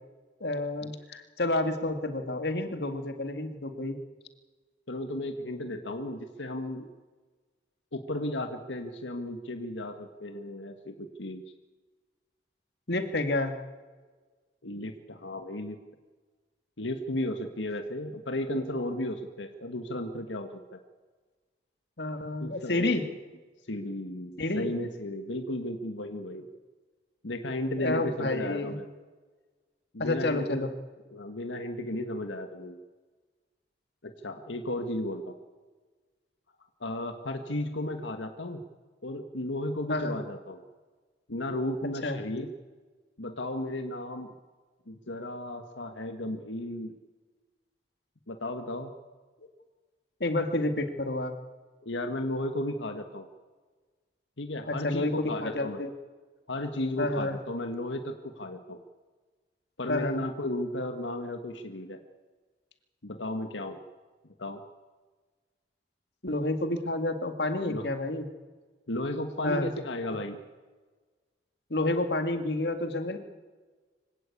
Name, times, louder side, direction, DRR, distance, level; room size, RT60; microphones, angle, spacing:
voice 1, 0.4-4.0 12.9-13.6 22.0-23.0 24.4-24.7 27.8-28.7 30.0-30.7 39.9-40.2 42.0-42.2 50.2-51.3 54.7-55.9 57.0-57.4 59.9-60.2 66.2-68.3 69.4-69.7 71.7-73.2, left 2 dB, 65° left, 7 dB, 2.1 m, -29 dB
voice 2, 4.9-6.9 7.9-11.4 14.6-15.8 16.8-20.8 22.4-23.1 23.7-26.5 27.2-28.9 29.9-30.7 31.1-32.8 34.0-35.3 36.8-38.6 39.0-40.6 41.3-42.5 43.2-44.3 44.9-47.0 48.3-48.9 51.8-53.3 54.4-55.8 56.5-58.8 59.8-62.0 63.0-63.8 64.4-64.6 67.7-67.9 68.9-70.4, left 1 dB, 85° left, 6 dB, 1.5 m, -34 dB
25.0 x 17.0 x 8.4 m, 1.4 s
head